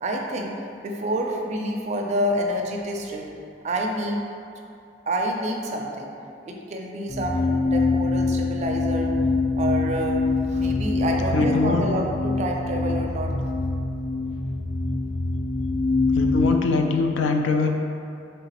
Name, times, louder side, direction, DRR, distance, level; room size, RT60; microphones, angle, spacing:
voice 1, 0.0-3.3 3.6-4.2 5.1-6.1 6.4-9.1 9.6-13.3, right 1 dB, 40° right, 1 dB, 0.4 m, -28 dB
sound 1, 7.1-16.5, left 3 dB, 55° left, 1.4 m, -24 dB
voice 2, 11.3-11.9 16.1-17.7, left 3 dB, 80° left, 3 dB, 0.3 m, -22 dB
3.9 x 3.2 x 2.8 m, 2.6 s
head